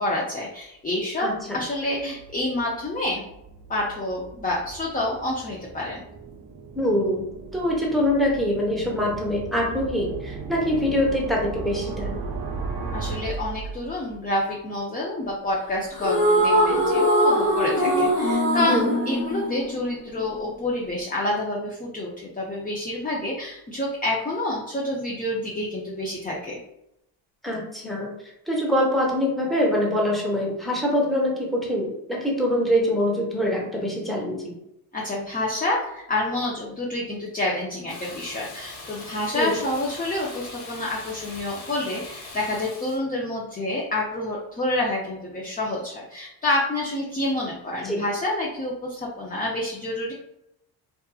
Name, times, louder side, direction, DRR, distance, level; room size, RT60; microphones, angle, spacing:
voice 1, 0.0-1.3 1.5-3.2 3.7-6.0 12.9-26.6 34.9-50.1, left 1 dB, 20° left, -3 dB, 0.5 m, -28 dB
voice 2, 1.2-1.6 6.7-7.2 7.5-12.2 18.7-18.9 27.4-28.1 28.5-34.4 39.3-39.5 47.8-48.0, equal, ahead, -2 dB, 0.8 m, -24 dB
sound 1, 1.3-14.3, right 4 dB, 50° right, 0.5 m, -36 dB
sound 2, 15.9-20.4, equal, 40° left, 0.9 m, -21 dB
Water tap faucet / Bathtub (filling or washing), 37.9-43.0, left 2 dB, 90° left, 0.8 m, -41 dB
2.6 x 2.4 x 2.3 m, 0.81 s
supercardioid pair, 65°, 48 cm